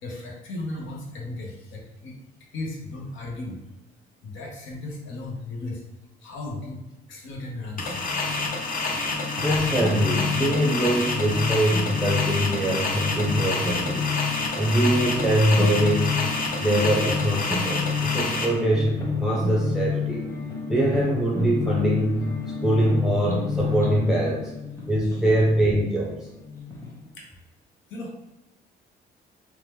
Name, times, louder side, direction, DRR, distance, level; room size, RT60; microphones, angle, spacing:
voice 1, 0.0-2.2 2.5-3.6 4.2-5.8 6.2-6.8 7.1-8.0 27.1-27.3 27.9-28.3, left 2 dB, 80° left, -1 dB, 0.8 m, -35 dB
sound 1, 7.8-18.5, left 3 dB, 45° left, 0.6 m, -28 dB
sound 2, 7.8-26.9, left 5 dB, 15° left, 1.0 m, -30 dB
voice 2, 9.4-14.1 14.6-16.2 16.6-20.3 20.7-22.3 22.6-24.5 24.9-26.1, right 1 dB, 5° right, -4 dB, 0.6 m, -23 dB
2.8 x 2.2 x 3.4 m, 1.0 s
cardioid pair, 90°, 20 cm